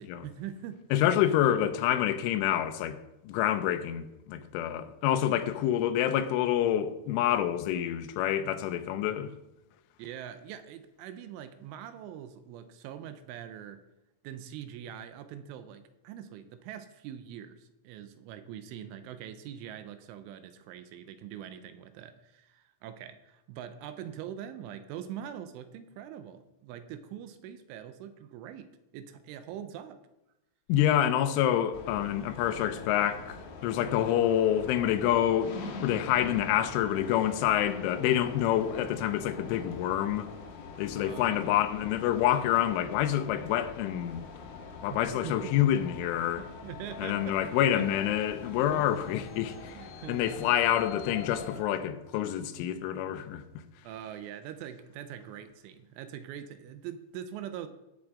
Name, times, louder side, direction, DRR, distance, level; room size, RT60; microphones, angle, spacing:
voice 1, 0.0-1.2 9.1-9.2 10.0-13.8 14.2-30.0 41.0-41.6 44.9-45.5 46.6-47.9 48.7-48.9 49.6-50.5 53.8-57.7, right 10 dB, 85° right, 3.1 m, -43 dB
voice 2, 0.9-3.0 3.2-9.3 30.7-35.5 35.8-40.3 40.8-44.3 44.8-46.5 47.0-49.8 50.1-53.4, left 11 dB, 85° left, 3.2 m, -27 dB
sound 1, 31.7-51.6, left 4 dB, 70° left, 2.9 m, -44 dB
17.0 x 6.2 x 3.7 m
omnidirectional pair, 5.5 m